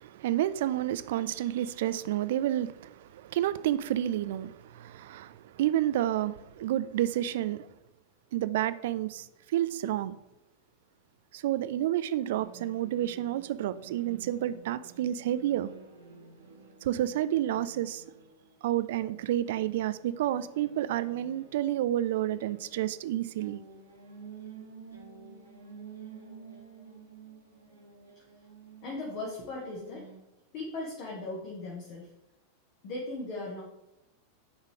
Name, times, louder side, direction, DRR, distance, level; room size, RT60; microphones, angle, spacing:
voice 1, 0.0-7.7 8.3-10.2 11.3-15.7 16.8-18.0 18.6-23.6, right 12 dB, 55° right, 0.3 m, -30 dB
sound 1, 12.2-30.2, right 5 dB, 80° right, 1.3 m, -51 dB
voice 2, 28.8-30.1 30.5-32.1 32.8-33.6, left 2 dB, 45° left, 1.5 m, -38 dB
9.7 x 4.0 x 3.4 m
figure-of-eight pair, 90°, 0 cm